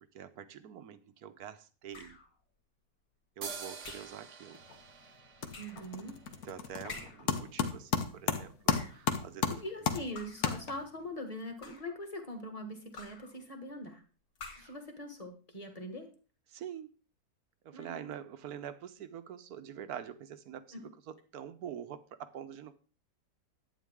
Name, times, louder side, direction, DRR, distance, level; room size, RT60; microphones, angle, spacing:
voice 1, 0.1-2.2 3.4-4.6 6.4-9.6 11.7-11.8 14.6-14.7 16.5-16.9 17.6-22.7, right 9 dB, 65° right, 11 dB, 1.3 m, -45 dB
sound 1, 1.9-2.3 3.8-4.2 5.5-5.9 6.9-7.4 8.5-9.1 10.2-10.6 11.4-12.0 13.0-13.4 14.4-14.8, left 3 dB, 80° left, 2.5 m, -48 dB
sound 2, 3.4-7.0, right 5 dB, 50° right, 1.3 m, -47 dB
sound 3, 4.5-4.9 5.2-11.1, left 6 dB, 60° left, 1.5 m, -34 dB
voice 2, 5.6-6.2 8.8-9.0 9.5-14.0 14.5-16.1 17.7-18.1 20.7-20.8, left 1 dB, 20° left, 5 dB, 1.8 m, -42 dB
11.5 x 9.1 x 3.6 m, 0.37 s
omnidirectional pair, 1.8 m